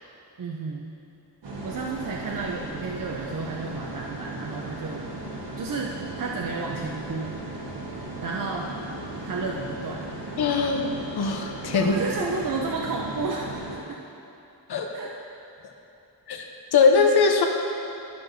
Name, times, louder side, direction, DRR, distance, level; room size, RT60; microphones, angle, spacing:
voice 1, 0.4-1.0 1.6-5.1 5.6-7.4 8.2-8.7 9.2-10.0 11.7-14.0 14.9-15.1, right 3 dB, 50° right, -1 dB, 0.5 m, -32 dB
sound 1, 1.4-13.8, right 2 dB, 90° right, 1.4 m, -36 dB
voice 2, 10.4-11.9 14.7-14.9 16.3-16.5 16.7-17.5, left 5 dB, 65° left, 3 dB, 0.7 m, -21 dB
12.0 x 5.8 x 2.6 m, 2.9 s
wide cardioid pair, 180°, 42 cm